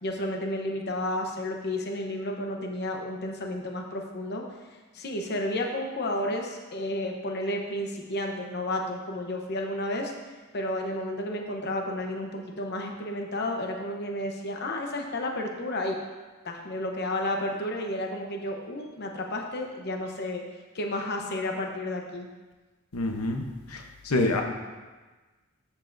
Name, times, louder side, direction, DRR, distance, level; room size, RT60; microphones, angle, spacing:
voice 1, 0.0-4.5 4.9-10.1 10.5-16.0 16.4-20.4 20.7-22.3, left 1 dB, 50° left, 2 dB, 0.9 m, -31 dB
voice 2, 22.9-23.4 23.7-24.4, left 2 dB, 85° left, 3 dB, 0.9 m, -27 dB
13.0 x 7.3 x 2.6 m, 1.3 s
head